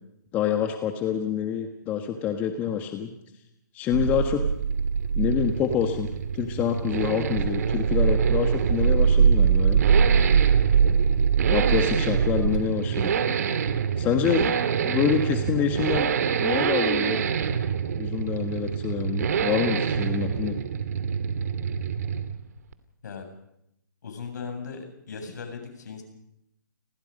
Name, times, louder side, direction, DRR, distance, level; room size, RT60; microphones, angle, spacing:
voice 1, 0.3-3.1 3.7-4.4 5.2-9.8 11.5-13.1 14.0-14.5 14.8-16.1 16.4-17.2 18.0-20.6, left 9 dB, 15° left, 5 dB, 1.5 m, -27 dB
sound 1, 3.9-12.6, right 6 dB, 80° right, 1.2 m, -22 dB
Accelerating revving vroom, 4.3-22.5 22.7-22.8, right 7 dB, 55° right, 2.3 m, -27 dB
voice 2, 24.0-26.0, left 5 dB, 65° left, 5 dB, 7.7 m, -37 dB
29.5 x 20.5 x 5.4 m, 0.81 s
hypercardioid pair, 155°, 10 cm